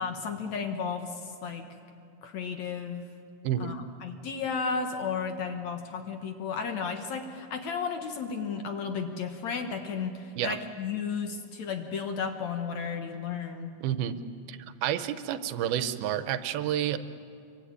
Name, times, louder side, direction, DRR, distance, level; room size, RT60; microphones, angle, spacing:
voice 1, 0.0-1.7 2.2-3.1 3.6-13.7, left 5 dB, 60° left, 5 dB, 2.2 m, -33 dB
voice 2, 13.8-14.2 14.5-17.0, right 11 dB, 80° right, 12 dB, 2.7 m, -30 dB
26.0 x 23.5 x 9.8 m, 2.5 s
omnidirectional pair, 4.4 m